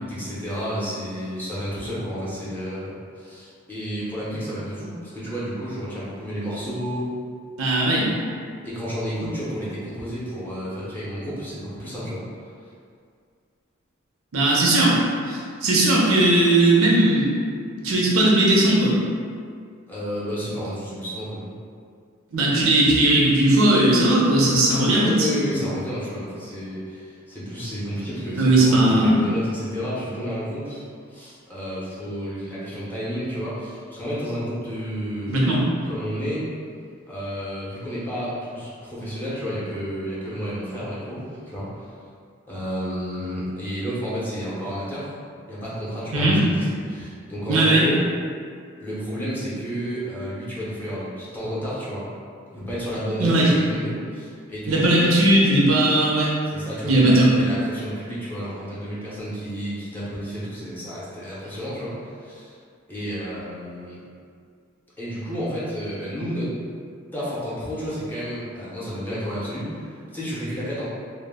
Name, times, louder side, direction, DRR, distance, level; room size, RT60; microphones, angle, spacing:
voice 1, 0.0-7.1 8.6-12.2 19.9-21.5 24.9-30.8 31.1-36.5 37.1-41.9 42.5-45.1 45.5-48.0 48.8-52.1 52.5-55.1 56.5-62.5 62.9-64.0 65.0-66.6 67.1-70.8, equal, 10° left, -10 dB, 0.6 m, -31 dB
voice 2, 7.6-8.1 14.3-17.3 17.8-19.0 22.3-25.3 28.4-29.2 35.3-35.6 46.1-46.4 47.5-47.9 53.2-53.5 54.7-56.4 56.8-57.5, right 1 dB, 75° right, -4 dB, 0.5 m, -18 dB
2.1 x 2.0 x 3.4 m, 2.2 s
head